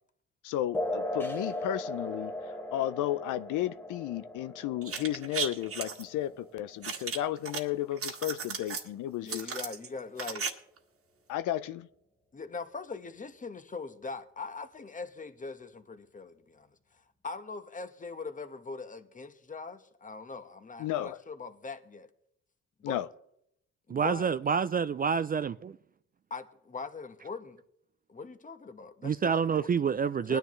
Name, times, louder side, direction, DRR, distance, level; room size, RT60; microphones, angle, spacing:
voice 1, 0.4-2.3 2.7-9.5 11.3-11.9 20.8-21.2 22.8-23.1, left 13 dB, 85° left, 0.6 m, -33 dB
sound 1, 0.7-7.8, left 1 dB, 5° left, 1.3 m, -38 dB
sound 2, 4.8-6.0 6.8-7.6 7.9-8.9 9.3-10.5 10.8-10.9, right 6 dB, 50° right, 1.6 m, -35 dB
voice 2, 9.2-10.5 12.3-22.1 22.8-23.1 23.9-24.3 26.3-27.6 28.1-29.7 30.3-30.4, left 4 dB, 25° left, 1.1 m, -41 dB
voice 3, 23.9-25.8 29.0-30.4, right 6 dB, 30° right, 0.4 m, -28 dB
20.5 x 10.0 x 3.1 m
cardioid pair, 90°, 30 cm